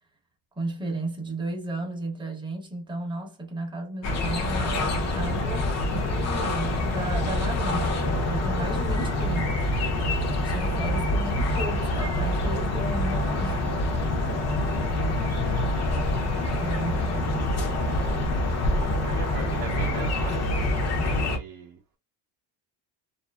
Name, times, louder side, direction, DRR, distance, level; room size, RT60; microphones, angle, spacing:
voice 1, 0.6-9.7 10.4-13.8 16.6-17.4, right 1 dB, 10° right, 0.8 m, -34 dB
sound 1, 4.0-21.4, left 1 dB, 35° left, 0.7 m, -26 dB
voice 2, 14.6-15.1 18.9-22.0, right 7 dB, 55° right, 0.7 m, -41 dB
2.6 x 2.5 x 2.2 m
cardioid pair, 125°, 43 cm